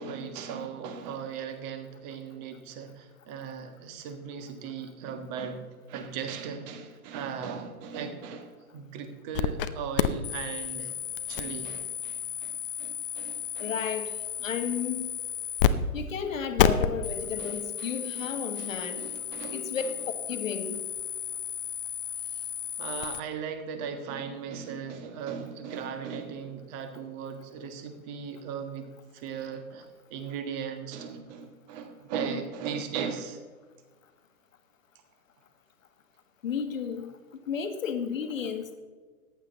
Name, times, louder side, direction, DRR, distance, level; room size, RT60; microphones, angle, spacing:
voice 1, 0.0-5.6 5.9-11.0 11.3-13.7 17.4-19.9 22.3-22.4 22.8-33.4, right 6 dB, 30° right, 7 dB, 1.6 m, -38 dB
sound 1, 9.3-9.7 10.0-15.7 16.0-16.1 16.6-23.2, left 9 dB, 40° left, 0.7 m, -31 dB
voice 2, 13.6-14.1 14.4-15.1 15.9-19.0 19.5-19.8 20.3-20.8 36.4-37.1 37.5-38.8, left 7 dB, 60° left, 8 dB, 1.7 m, -33 dB
14.5 x 10.0 x 4.0 m, 1.4 s
figure-of-eight pair, 120°, 44 cm